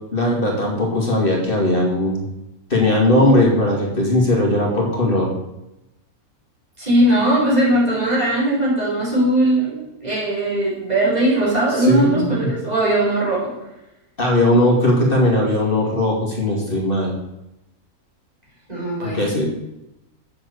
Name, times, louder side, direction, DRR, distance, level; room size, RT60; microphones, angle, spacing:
voice 1, 0.1-2.2 2.7-5.3 11.7-12.5 14.2-17.1 19.0-19.4, left 1 dB, 35° left, -2 dB, 2.6 m, -18 dB
voice 2, 6.8-13.5 18.7-19.5, right 1 dB, 25° right, -7 dB, 5.1 m, -19 dB
8.1 x 7.1 x 8.2 m, 0.92 s
omnidirectional pair, 1.5 m